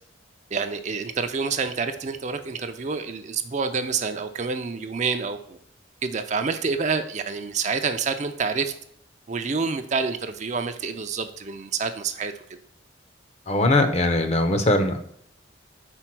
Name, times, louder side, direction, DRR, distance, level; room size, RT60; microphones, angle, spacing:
voice 1, 0.5-5.6 6.0-8.7 9.3-12.3, right 5 dB, 35° right, 7 dB, 0.4 m, -28 dB
voice 2, 13.5-15.0, left 2 dB, 35° left, 7 dB, 0.6 m, -20 dB
4.5 x 4.5 x 5.9 m, 0.69 s
head